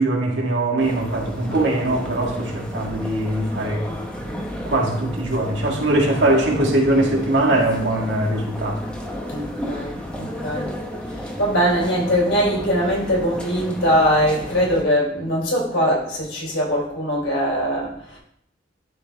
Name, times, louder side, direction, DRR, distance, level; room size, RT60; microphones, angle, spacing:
voice 1, 0.0-3.8 4.6-8.8, right 1 dB, 70° right, -1 dB, 1.7 m, -21 dB
sound 1, 0.8-14.8, equal, 5° left, 0.9 m, -32 dB
voice 2, 9.3-10.7 11.4-18.2, equal, 85° left, -3 dB, 3.4 m, -21 dB
11.5 x 3.8 x 3.5 m, 0.67 s
head